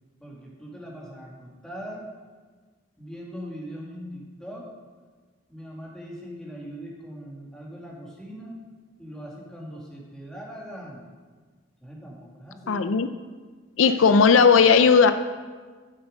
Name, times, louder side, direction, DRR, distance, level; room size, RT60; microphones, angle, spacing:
voice 1, 0.2-2.1 3.0-4.7 5.5-8.6 9.0-11.1 11.8-12.8, equal, 5° left, -4 dB, 2.1 m, -40 dB
voice 2, 12.7-13.1 13.8-15.1, left 5 dB, 85° left, 10 dB, 0.5 m, -16 dB
12.5 x 7.3 x 5.2 m, 1.4 s
head